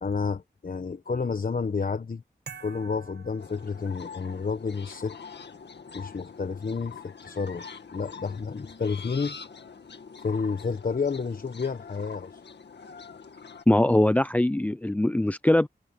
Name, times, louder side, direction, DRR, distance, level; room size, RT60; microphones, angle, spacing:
voice 1, 0.0-2.2 2.6-5.2 5.9-7.6 7.9-9.4 10.2-12.4, left 5 dB, 55° left, 1.1 m, -30 dB
sound 1, 2.5-4.4, right 5 dB, 70° right, 2.0 m, -47 dB
sound 2, 3.4-13.6, left 5 dB, 90° left, 2.0 m, -44 dB
voice 2, 13.7-15.7, left 1 dB, 10° left, 0.4 m, -22 dB
wide cardioid pair, 65°, 17 cm